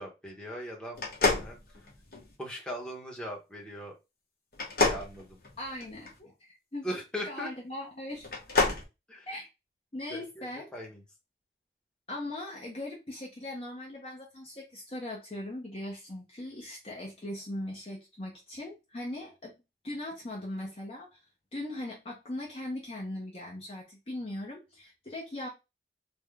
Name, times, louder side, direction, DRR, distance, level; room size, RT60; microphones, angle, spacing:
voice 1, 0.0-1.6 2.4-3.9 4.8-5.4 6.8-7.5 9.1-9.3 10.1-11.0, equal, 5° left, -2 dB, 0.8 m, -39 dB
sound 1, 1.0-2.3 4.5-6.1 8.2-8.8, left 3 dB, 55° left, 1.0 m, -28 dB
voice 2, 5.6-6.9 7.2-8.3 9.3-9.5 9.9-10.7 12.1-19.5 19.8-21.2 21.5-25.5, left 1 dB, 35° left, -2 dB, 0.7 m, -39 dB
3.5 x 2.1 x 3.5 m, 0.25 s
head